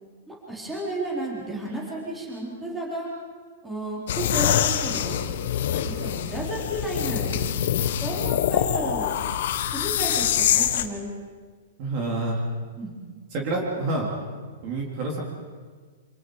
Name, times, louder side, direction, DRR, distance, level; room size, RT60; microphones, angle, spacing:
voice 1, 0.3-3.1 3.6-5.4 5.7-7.4 8.0-9.2 9.7-11.1 12.8-12.9, right 1 dB, 5° right, -4 dB, 4.1 m, -32 dB
sound 1, 4.1-10.9, left 10 dB, 50° left, 1.3 m, -25 dB
voice 2, 11.8-12.4 13.3-14.1 14.6-15.2, right 2 dB, 30° right, -1 dB, 3.5 m, -27 dB
28.5 x 27.5 x 5.0 m, 1.6 s
hypercardioid pair, 175°, 0 cm